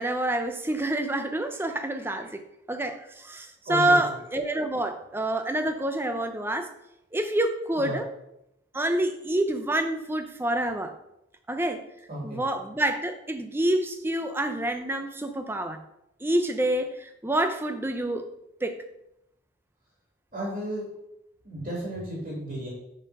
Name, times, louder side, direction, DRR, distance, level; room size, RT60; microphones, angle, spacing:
voice 1, 0.0-2.4 2.7-6.7 7.1-8.1 8.7-10.9 11.5-11.8 12.2-15.8 16.2-18.3 18.6-18.8, right 1 dB, 10° right, 7 dB, 0.5 m, -27 dB
voice 2, 3.6-4.0 7.8-8.0 12.1-12.4 20.3-20.9 21.4-22.7, right 1 dB, 40° right, -5 dB, 2.3 m, -33 dB
6.6 x 4.4 x 5.3 m, 0.84 s
head